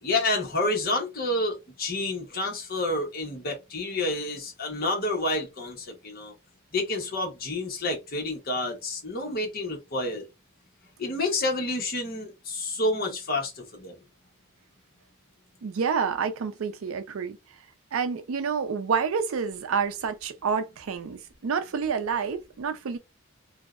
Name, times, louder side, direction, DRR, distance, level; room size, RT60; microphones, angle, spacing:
voice 1, 0.0-6.3 6.7-10.2 11.0-14.0, left 2 dB, 45° left, 0.9 m, -29 dB
voice 2, 15.6-17.4 17.9-23.0, right 6 dB, 80° right, 0.4 m, -28 dB
2.6 x 2.1 x 2.4 m
head